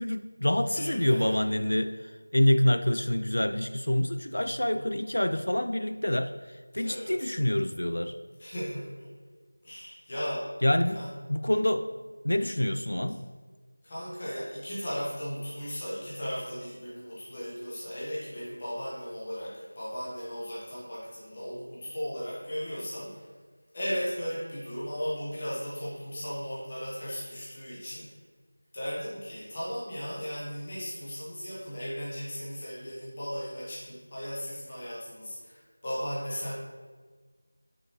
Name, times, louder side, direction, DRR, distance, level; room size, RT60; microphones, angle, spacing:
voice 1, 0.0-8.1 10.6-11.0 11.3-11.9 12.2-13.2, left 1 dB, 75° left, 9 dB, 0.4 m, -27 dB
voice 2, 0.7-1.4 4.7-4.9 6.8-7.1 8.4-9.1 9.6-10.5 10.9-11.1 13.8-23.3 23.7-28.1 28.7-36.6, equal, 20° left, -8 dB, 1.3 m, -36 dB
9.9 x 4.7 x 3.1 m, 1.5 s
figure-of-eight pair, 180°, 0 cm